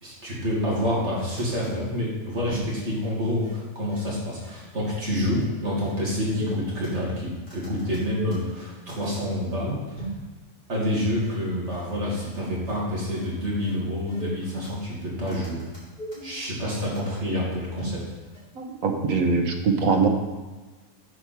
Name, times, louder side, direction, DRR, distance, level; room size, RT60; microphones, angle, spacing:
voice 1, 0.0-10.0 10.7-15.6 16.2-18.0, left 1 dB, 55° right, -6 dB, 2.7 m, -28 dB
sound 1, 1.4-1.7 2.4-2.7 3.0-3.1 3.4-3.5 3.9-4.0 4.4-4.5 4.8-5.0 5.3-5.4 5.8-5.9 6.3-6.9 7.5-8.6 8.9-9.3 10.0-10.3 10.8-10.9 11.2-11.3 11.7-11.8 12.2-12.3 12.6-12.8 13.1-13.2 13.6-13.7 14.1-14.7 15.3-16.4 16.7-17.1 17.8-18.1 18.3-18.4, right 2 dB, 40° left, 3.2 m, -38 dB
voice 2, 18.5-20.1, right 4 dB, 85° right, 4 dB, 1.3 m, -22 dB
7.6 x 4.7 x 5.8 m, 1.2 s
omnidirectional pair, 1.4 m